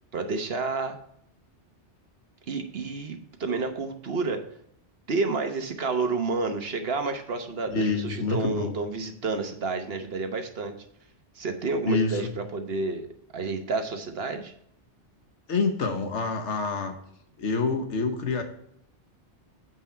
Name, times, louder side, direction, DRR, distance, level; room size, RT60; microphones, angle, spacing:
voice 1, 0.1-1.0 2.5-4.4 5.1-10.8 11.3-13.1 13.3-14.5, right 3 dB, 60° right, 6 dB, 1.2 m, -30 dB
voice 2, 7.7-8.8 11.8-12.3 15.5-17.0 17.4-18.4, left 4 dB, 85° left, 5 dB, 1.4 m, -27 dB
7.8 x 5.7 x 4.5 m, 0.72 s
omnidirectional pair, 1.2 m